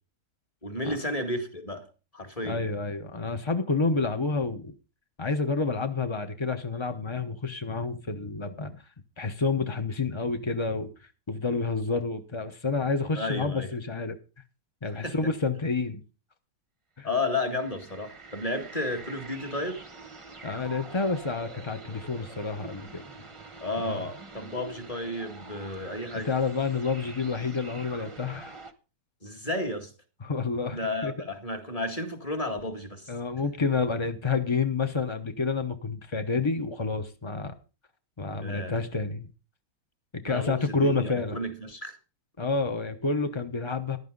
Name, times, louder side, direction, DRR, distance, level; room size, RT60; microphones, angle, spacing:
voice 1, 0.6-1.9 2.1-2.6 13.1-13.7 15.0-15.1 17.0-19.8 23.6-26.3 29.2-29.9 30.7-33.1 38.4-38.7 40.3-42.0, left 2 dB, 15° left, 2.0 m, -32 dB
voice 2, 2.4-4.7 5.2-8.8 9.2-10.9 11.3-14.2 14.8-16.0 17.0-17.1 20.4-23.0 23.8-24.1 26.1-28.6 30.2-31.1 33.1-37.5 38.2-39.3 40.2-41.4 42.4-44.0, left 4 dB, 40° left, 0.4 m, -29 dB
sound 1, 17.1-28.7, right 3 dB, 20° right, 0.8 m, -46 dB
15.0 x 11.5 x 3.9 m
omnidirectional pair, 2.3 m